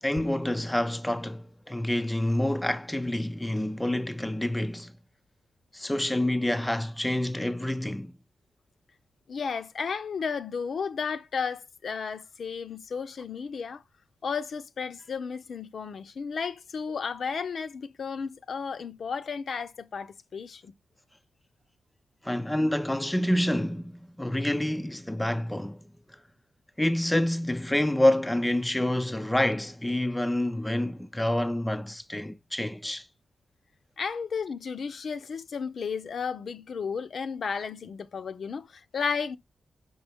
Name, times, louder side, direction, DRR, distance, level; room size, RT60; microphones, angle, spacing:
voice 1, 0.0-4.9 5.7-8.1 22.2-25.8 26.8-33.1, left 1 dB, 5° left, 0.5 m, -27 dB
voice 2, 9.3-13.8 14.2-20.7 34.0-39.4, left 5 dB, 60° left, 0.6 m, -33 dB
5.5 x 5.4 x 3.4 m
wide cardioid pair, 105°, 0 cm